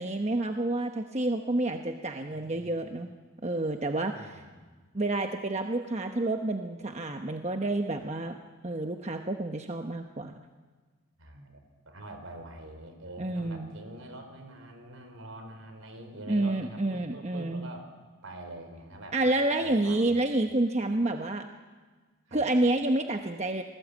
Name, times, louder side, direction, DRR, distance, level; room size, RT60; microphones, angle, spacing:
voice 1, 0.0-3.1 3.4-4.4 4.9-8.4 8.6-10.3 13.2-13.7 16.3-17.7 19.1-21.4 22.3-23.6, right 2 dB, 30° right, 5 dB, 1.0 m, -29 dB
voice 2, 2.3-3.0 4.1-4.6 8.0-8.1 11.2-11.6 11.9-17.9 18.2-19.2 19.6-20.2 22.3-22.4, right 1 dB, 70° right, 7 dB, 4.4 m, -45 dB
27.5 x 20.0 x 8.3 m, 1.4 s
head